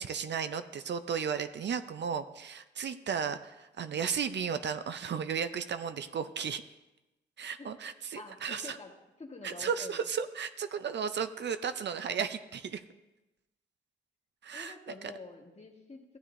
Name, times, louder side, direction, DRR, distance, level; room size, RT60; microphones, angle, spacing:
voice 1, 0.0-6.6 7.4-8.8 9.4-12.8 14.4-14.7, right 7 dB, 65° right, 10 dB, 0.5 m, -34 dB
voice 2, 8.1-8.9 9.2-10.0 14.5-16.2, left 3 dB, 35° left, 1 dB, 1.5 m, -47 dB
15.0 x 8.2 x 2.6 m, 1.0 s
cardioid pair, 80°, 20 cm